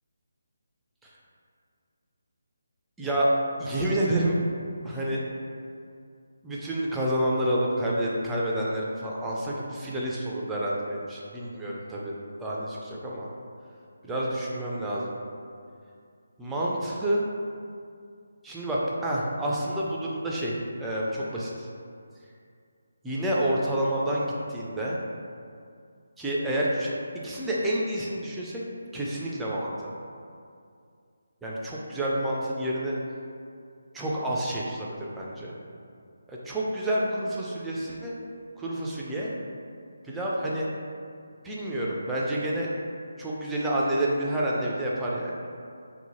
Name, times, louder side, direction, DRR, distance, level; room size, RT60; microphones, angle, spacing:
voice 1, 3.0-3.3 3.6-4.4 4.8-5.2 6.4-12.1 12.4-13.3 14.0-15.2 16.4-17.2 18.4-21.7 23.0-25.0 26.2-26.9 27.2-28.6 28.9-29.9 31.4-32.9 33.9-35.6 36.3-38.1 38.6-39.3 40.0-40.7 41.4-42.7 43.2-45.3, right 1 dB, 5° right, -6 dB, 0.3 m, -29 dB
2.7 x 2.1 x 3.0 m, 2.3 s
figure-of-eight pair, 155°, 0 cm